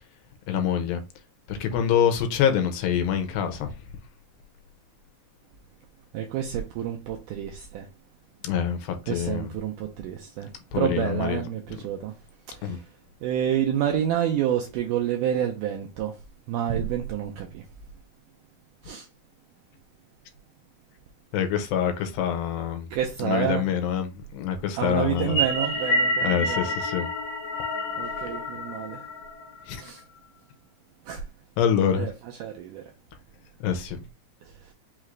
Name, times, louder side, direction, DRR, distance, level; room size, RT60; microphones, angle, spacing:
voice 1, 0.5-1.0 1.5-3.7 8.4-8.8 9.1-9.5 10.7-11.4 12.6-12.8 21.3-22.9 23.2-24.1 24.3-25.4 26.2-27.1 29.7-29.8 31.6-32.1 33.6-34.0, left 8 dB, 85° left, 2.4 m, -25 dB
voice 2, 6.1-7.9 9.1-12.1 12.5-12.9 13.2-16.2 16.5-17.7 18.8-19.1 22.9-23.7 24.8-26.7 28.0-29.1 29.7-30.0 31.1-31.3 32.0-32.9 34.4-34.7, right 10 dB, 85° right, 1.8 m, -29 dB
sound 1, 25.2-29.7, equal, 70° left, 2.6 m, -28 dB
5.6 x 2.4 x 3.1 m
omnidirectional pair, 4.2 m